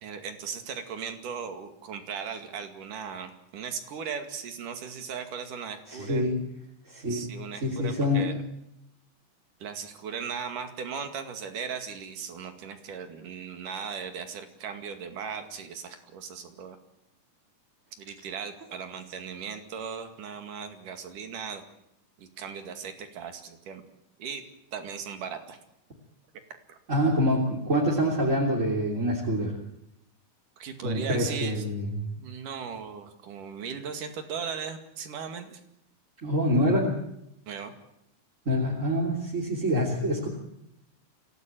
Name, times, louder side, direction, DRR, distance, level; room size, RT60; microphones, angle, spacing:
voice 1, 0.0-6.3 7.1-8.4 9.6-16.8 18.0-21.6 22.2-23.8 24.2-24.4 24.7-25.6 26.7-26.8 30.6-31.6 32.2-35.6 37.5-37.7, right 6 dB, 70° right, 7 dB, 3.8 m, -37 dB
voice 2, 5.9-6.4 6.9-7.3 7.6-8.3 26.9-29.6 30.8-31.9 36.2-37.0 38.4-40.3, equal, 20° right, -3 dB, 3.3 m, -26 dB
26.0 x 17.5 x 9.1 m, 0.82 s
omnidirectional pair, 3.8 m